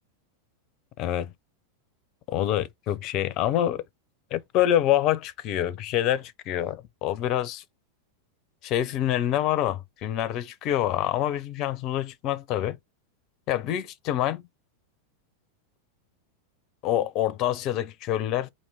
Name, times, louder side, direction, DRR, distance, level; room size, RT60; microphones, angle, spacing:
voice 1, 1.0-1.3 2.3-3.8 4.3-7.6 8.6-12.8 13.5-14.4 16.8-18.5, left 12 dB, 40° left, 0.6 m, -26 dB
4.5 x 2.9 x 4.0 m
figure-of-eight pair, 90°, 0 cm